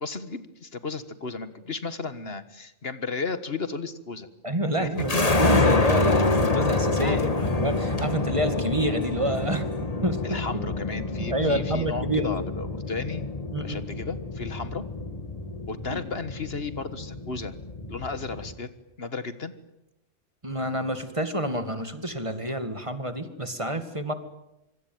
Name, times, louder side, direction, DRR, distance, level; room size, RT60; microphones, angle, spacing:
voice 1, 0.0-4.3 4.8-4.9 7.0-7.5 10.2-13.3 13.6-14.8 15.7-17.5 17.9-18.7 19.0-19.5, left 4 dB, 55° left, 12 dB, 1.7 m, -34 dB
voice 2, 4.4-5.1 5.4-9.7 10.0-10.6 11.1-12.4 13.5-13.8 15.9-16.0 20.4-24.1, equal, 25° right, 10 dB, 2.1 m, -28 dB
sound 1, 5.0-18.5, left 2 dB, 30° left, 1.8 m, -27 dB
25.5 x 24.5 x 9.3 m, 0.88 s
omnidirectional pair, 1.3 m